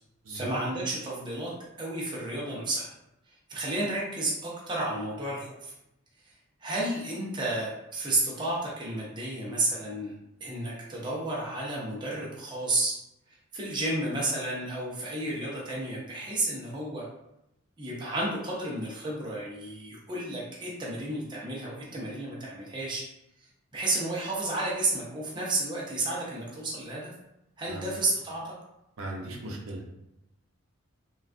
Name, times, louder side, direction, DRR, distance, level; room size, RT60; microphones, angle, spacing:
voice 1, 0.3-1.5 1.8-2.9 3.5-5.7 6.6-10.1 10.4-13.0 13.3-17.1 17.8-23.0 23.7-27.1 27.6-28.5, right 2 dB, 20° right, -5 dB, 0.6 m, -32 dB
voice 2, 29.0-29.9, right 1 dB, 80° right, -2 dB, 0.7 m, -38 dB
3.3 x 2.3 x 2.4 m, 0.86 s
head